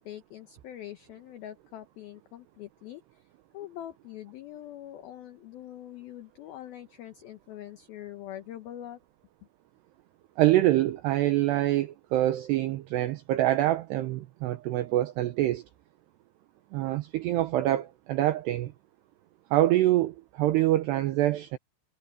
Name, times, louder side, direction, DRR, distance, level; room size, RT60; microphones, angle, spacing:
voice 1, 0.0-3.3 3.5-9.0, left 12 dB, 75° left, 2.2 m, -43 dB
voice 2, 10.4-15.6 16.7-18.7 19.5-21.6, right 15 dB, 85° right, 2.4 m, -25 dB
omnidirectional pair, 5.9 m